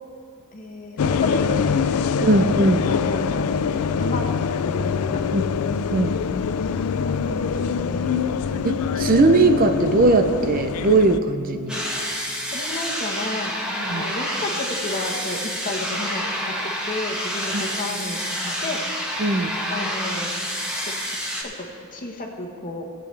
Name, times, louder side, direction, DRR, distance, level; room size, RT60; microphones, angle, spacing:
voice 1, 0.5-2.3 2.8-3.5 4.0-4.3 4.6-5.2 7.1-8.3 12.5-18.2 18.4-18.8 19.7-20.3 20.7-20.9 21.4-21.5 21.9-22.8, left 2 dB, 40° left, 2 dB, 1.2 m, -32 dB
sound 1, 1.0-11.2, left 6 dB, 75° left, 0.4 m, -24 dB
voice 2, 2.2-2.8 5.3-5.4 5.9-6.1 8.6-11.8 13.9-14.0 17.5-17.6 19.2-19.5, right 2 dB, 40° right, 7 dB, 0.5 m, -19 dB
sound 2, 11.7-21.4, equal, 5° right, 1.5 m, -28 dB
19.0 x 8.5 x 3.3 m, 2.6 s
head